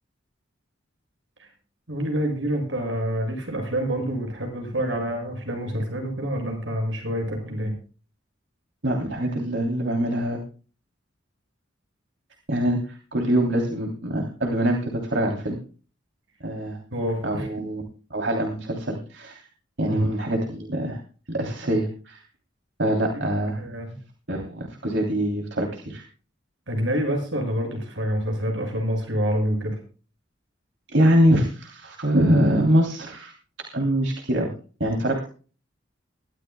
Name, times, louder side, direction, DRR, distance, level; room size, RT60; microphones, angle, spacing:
voice 1, 1.9-7.7 16.9-17.5 19.8-20.0 23.1-23.2 23.6-23.9 26.7-29.8, equal, 85° right, 3 dB, 7.0 m, -27 dB
voice 2, 8.8-10.4 12.5-15.6 16.4-16.8 17.2-17.8 18.1-19.4 19.8-21.0 21.3-22.2 22.8-23.6 24.3-26.0 30.9-33.3 33.7-34.5 34.8-35.3, right 1 dB, 70° right, 1 dB, 3.1 m, -24 dB
23.0 x 13.5 x 2.3 m, 0.38 s
head